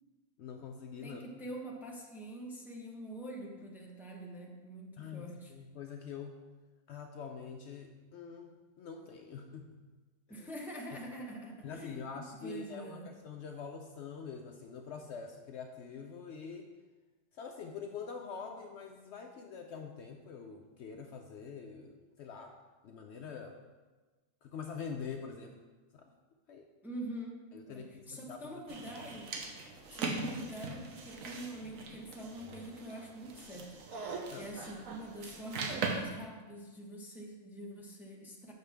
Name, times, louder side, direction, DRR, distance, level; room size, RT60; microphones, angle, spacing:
voice 1, 0.4-1.2 5.0-6.4 6.9-9.8 10.3-10.5 11.6-16.7 17.4-22.5 22.8-23.6 24.4-25.5 25.9-26.1 26.5-26.7 27.5-28.5 34.3-34.5, left 6 dB, 65° left, 4 dB, 0.8 m, -45 dB
voice 2, 1.0-5.5 10.3-13.1 26.8-27.4 27.7-29.3 29.9-38.5, right 1 dB, ahead, -2 dB, 0.8 m, -45 dB
sound 1, 28.7-36.0, right 4 dB, 85° right, 1.2 m, -40 dB
8.0 x 5.9 x 3.4 m, 1.3 s
omnidirectional pair, 1.4 m